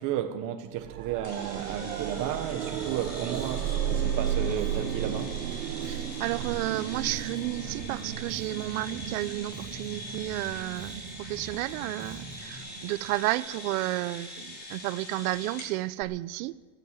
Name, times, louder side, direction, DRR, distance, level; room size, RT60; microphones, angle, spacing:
voice 1, 0.0-5.4, right 10 dB, 45° right, 1.2 m, -33 dB
sound 1, 0.8-13.7 16.0-16.1, right 9 dB, 90° right, 1.3 m, -34 dB
sound 2, 1.2-15.7, left 1 dB, 25° left, 5.4 m, -43 dB
Bass guitar, 2.7-12.6, left 1 dB, ahead, 1.6 m, -48 dB
voice 2, 5.9-16.6, right 18 dB, 70° right, 0.8 m, -32 dB
15.5 x 9.2 x 9.4 m
supercardioid pair, 135°, 43 cm